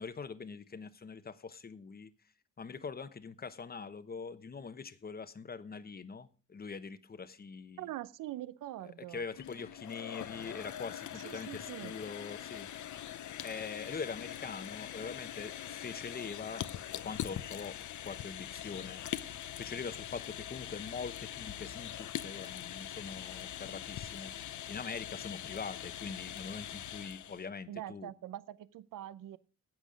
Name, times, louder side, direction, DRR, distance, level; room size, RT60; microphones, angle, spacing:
voice 1, 0.0-2.1 2.6-7.9 9.1-12.7 13.4-16.6 16.9-17.8 18.0-19.0 19.6-24.3 24.7-28.1, left 5 dB, 30° left, 12 dB, 1.0 m, -43 dB
voice 2, 7.8-9.2 11.1-11.9 27.7-29.4, right 13 dB, 75° right, 18 dB, 0.6 m, -43 dB
sound 1, 9.3-27.5, left 11 dB, 65° left, 0.7 m, -43 dB
12.0 x 8.3 x 5.1 m, 0.36 s
cardioid pair, 100°, 32 cm